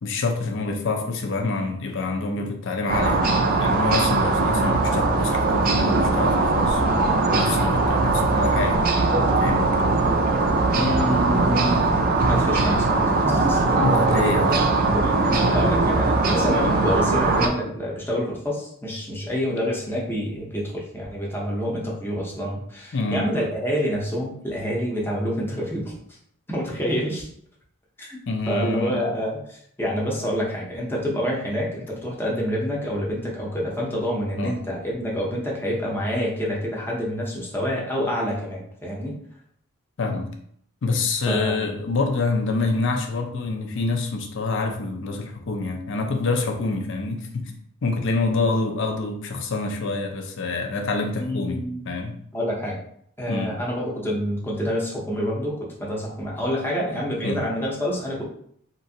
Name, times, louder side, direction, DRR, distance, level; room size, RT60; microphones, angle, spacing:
voice 1, 0.0-3.2 3.6-6.8 7.3-8.8 9.4-9.8 13.8-14.5 22.9-23.3 28.3-29.0 34.4-34.6 40.0-40.3 40.8-47.5 47.8-52.2 53.3-53.6 57.2-57.4, left 3 dB, 60° left, 4 dB, 0.5 m, -26 dB
sound 1, 2.9-17.5, right 3 dB, 45° right, 0.4 m, -20 dB
voice 2, 10.7-11.9 12.3-13.8 14.9-25.9 26.5-27.3 28.0-28.2 28.5-39.2 41.3-41.8 51.2-51.8 52.3-52.8 53.2-58.2, equal, 10° left, -4 dB, 0.7 m, -27 dB
3.0 x 2.5 x 2.7 m, 0.67 s
head